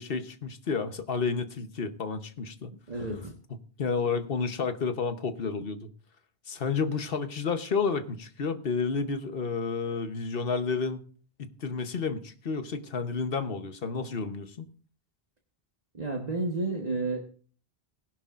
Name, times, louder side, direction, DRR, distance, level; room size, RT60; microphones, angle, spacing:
voice 1, 0.0-2.7 3.8-5.9 6.5-11.0 11.4-14.7, left 5 dB, 65° left, 9 dB, 1.2 m, -31 dB
voice 2, 2.9-3.3 15.9-17.3, right 2 dB, 40° right, 0 dB, 1.4 m, -31 dB
19.0 x 11.0 x 2.5 m, 0.43 s
omnidirectional pair, 1.1 m